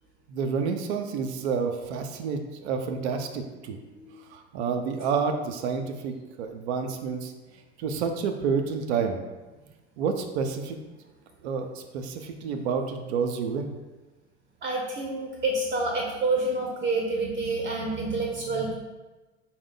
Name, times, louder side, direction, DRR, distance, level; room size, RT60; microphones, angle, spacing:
voice 1, 0.3-3.8 4.3-7.3 7.8-9.2 10.0-10.8 11.4-13.7, right 5 dB, 75° right, 5 dB, 0.5 m, -29 dB
voice 2, 14.6-18.7, right 2 dB, 30° right, 0 dB, 0.6 m, -28 dB
4.3 x 2.1 x 3.7 m, 1.2 s
hypercardioid pair, 65°, 33 cm